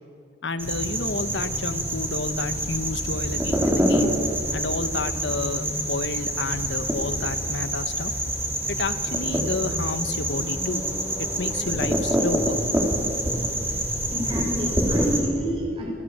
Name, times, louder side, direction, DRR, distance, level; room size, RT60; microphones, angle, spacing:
voice 1, 0.4-4.1 4.5-8.1 8.7-10.8 11.2-12.6, left 3 dB, 90° left, 11 dB, 1.4 m, -30 dB
sound 1, 0.6-15.2, right 1 dB, 10° right, 4.3 m, -26 dB
voice 2, 13.8-15.9, equal, 30° right, 1 dB, 6.4 m, -29 dB
28.0 x 19.0 x 8.9 m, 2.3 s
head